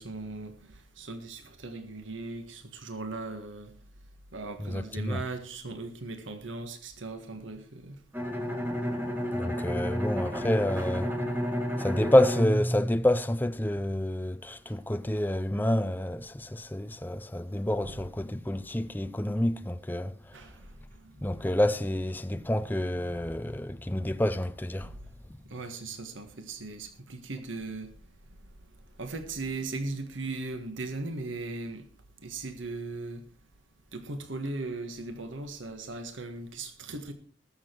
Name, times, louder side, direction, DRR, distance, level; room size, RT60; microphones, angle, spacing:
voice 1, 0.0-3.7 4.3-8.0 17.8-18.0 20.3-20.7 21.0-21.1 24.8-24.9 25.5-27.9 29.0-31.8 32.2-33.2 33.9-37.1, right 3 dB, 85° right, 1.6 m, -38 dB
voice 2, 4.6-5.2 9.3-11.1 11.8-20.1 21.2-24.9, left 1 dB, 10° left, 0.5 m, -28 dB
Bowed string instrument, 8.1-13.8, equal, 10° right, 1.7 m, -31 dB
20.0 x 7.3 x 4.5 m
head